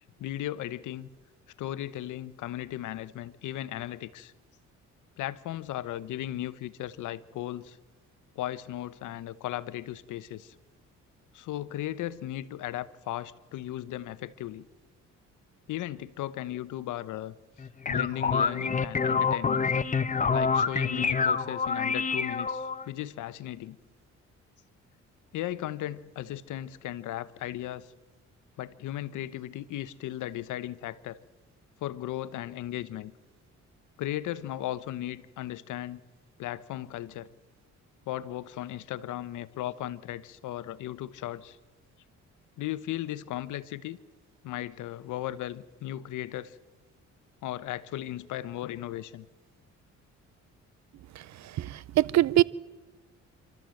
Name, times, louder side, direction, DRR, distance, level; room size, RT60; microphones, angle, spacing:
voice 1, 0.2-1.1 1.6-4.3 5.2-7.8 8.4-10.5 11.3-14.7 15.7-17.3 17.9-19.6 20.3-23.8 25.3-27.9 28.6-31.2 31.8-33.1 34.0-36.0 36.4-37.3 38.1-41.6 42.6-44.0 44.4-46.6 47.4-49.3, left 13 dB, 85° left, 0.9 m, -36 dB
sound 1, 17.6-22.8, left 5 dB, 25° left, 1.0 m, -27 dB
voice 2, 51.6-52.4, right 14 dB, 65° right, 0.6 m, -23 dB
27.5 x 13.5 x 7.7 m
cardioid pair, 90°, 30 cm